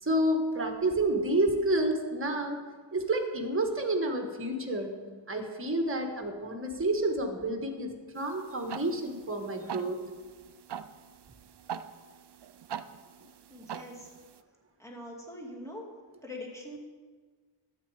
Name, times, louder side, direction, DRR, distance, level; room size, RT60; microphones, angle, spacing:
voice 1, 0.0-2.6 2.9-4.9 5.3-10.0, right 1 dB, 25° right, 4 dB, 1.4 m, -29 dB
sound 1, 8.2-14.4, right 8 dB, 55° right, 0.6 m, -44 dB
voice 2, 13.5-14.1 14.8-15.8 16.2-16.8, left 1 dB, 5° left, -2 dB, 2.2 m, -43 dB
12.0 x 8.5 x 4.8 m, 1.5 s
wide cardioid pair, 80°, 50 cm